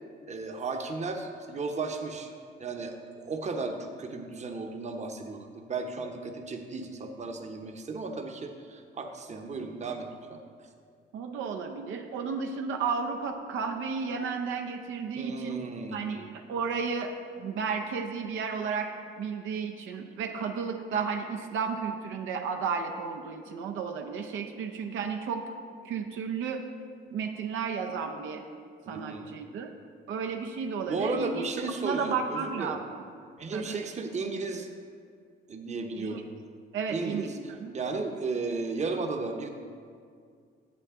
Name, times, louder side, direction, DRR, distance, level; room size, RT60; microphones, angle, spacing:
voice 1, 0.3-2.3 2.6-10.4 15.2-16.1 28.8-29.3 30.9-32.8 33.4-34.7 35.5-36.3 36.9-39.5, right 3 dB, 35° right, 4 dB, 0.8 m, -34 dB
voice 2, 11.1-15.6 15.9-18.9 19.2-25.4 25.8-26.6 27.1-28.4 28.9-29.7 30.1-32.8 33.5-33.7 36.0-36.2 36.7-37.3 37.6-37.8, right 5 dB, 80° right, 4 dB, 0.6 m, -33 dB
8.4 x 7.8 x 3.6 m, 2.2 s
cardioid pair, 90°, 20 cm